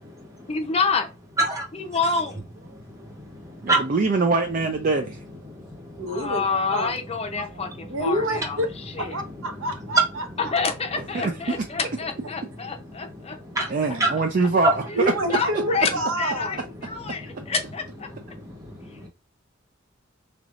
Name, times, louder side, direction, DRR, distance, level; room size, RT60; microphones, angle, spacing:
voice 1, 0.5-1.1 1.7-2.3 6.1-8.6 8.9-9.1 10.4-13.4 14.9-15.9 16.2-18.1 18.8-19.0, left 4 dB, 30° left, 0.6 m, -28 dB
voice 2, 3.1-3.9 5.5-6.0 13.5-13.7 14.0-14.2 17.4-17.5 18.3-19.1, right 2 dB, 15° right, 1.1 m, -27 dB
voice 3, 3.6-5.2 11.1-11.3 13.7-15.1, right 3 dB, 40° right, 0.4 m, -23 dB
voice 4, 6.0-6.4 6.7-6.9 7.9-8.7 9.0-10.5 14.9-16.6, right 1 dB, 70° right, 0.9 m, -28 dB
3.8 x 3.4 x 2.4 m
head